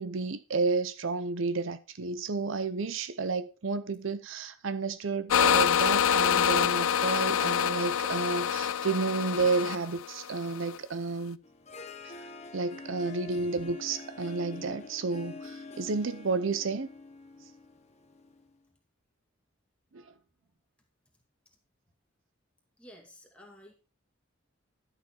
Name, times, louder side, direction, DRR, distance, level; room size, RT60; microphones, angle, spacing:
voice 1, 0.0-11.4 12.0-12.1 12.5-16.9 19.9-20.0, right 4 dB, 70° right, 0.6 m, -31 dB
sound 1, 5.3-10.8, left 8 dB, 85° left, 0.5 m, -26 dB
Harp, 11.4-18.5, left 3 dB, 30° left, 1.1 m, -46 dB
voice 2, 22.8-23.7, equal, 5° left, 2.2 m, -52 dB
11.5 x 6.8 x 4.3 m
head